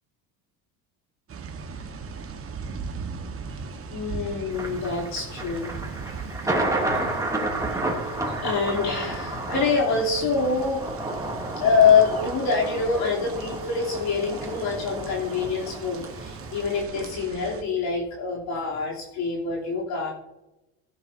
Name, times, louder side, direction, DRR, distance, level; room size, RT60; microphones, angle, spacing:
sound 1, 1.3-17.6, right 5 dB, 35° right, 1.4 m, -39 dB
voice 1, 3.4-5.8 6.5-7.1 7.6-7.7 8.2-10.8 11.6-20.1, left 5 dB, 65° left, -5 dB, 3.3 m, -25 dB
Thunder, 4.5-16.8, right 2 dB, 10° right, 2.6 m, -31 dB
15.5 x 11.0 x 2.8 m, 0.96 s
cardioid pair, 110°, 40 cm